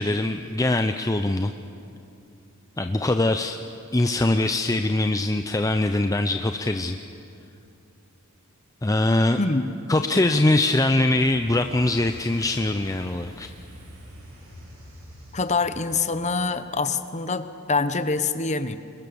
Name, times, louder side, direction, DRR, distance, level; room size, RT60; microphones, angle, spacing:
voice 1, 0.0-1.5 2.8-3.6 3.9-7.0 8.8-9.4 9.9-13.5, left 2 dB, 15° left, 7 dB, 0.6 m, -22 dB
voice 2, 9.4-9.7 15.3-18.8, left 4 dB, 30° left, 11 dB, 1.0 m, -25 dB
sound 1, 11.1-16.4, equal, 65° right, 7.1 m, -45 dB
27.5 x 22.5 x 7.0 m, 2.6 s
head